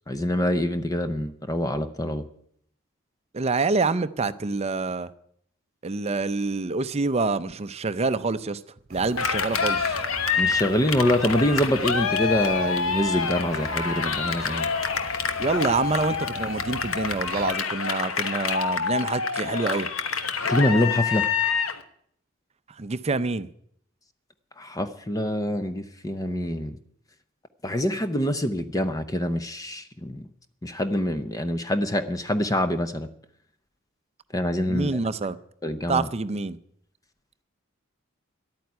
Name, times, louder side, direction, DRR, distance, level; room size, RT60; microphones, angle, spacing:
voice 1, 0.1-2.2 10.4-14.7 20.4-21.3 24.6-26.8 27.6-30.3 30.6-33.1 34.3-35.0 35.6-36.1, left 1 dB, 15° left, 0.7 m, -25 dB
voice 2, 3.3-5.1 5.8-8.6 8.9-10.0 15.4-19.9 22.8-23.5 34.7-35.4 35.9-36.6, right 3 dB, 30° right, 0.5 m, -26 dB
sound 1, 8.9-17.5, right 2 dB, 45° right, 1.1 m, -42 dB
Cheering, 9.2-21.8, left 5 dB, 85° left, 1.1 m, -27 dB
11.5 x 9.1 x 9.5 m
head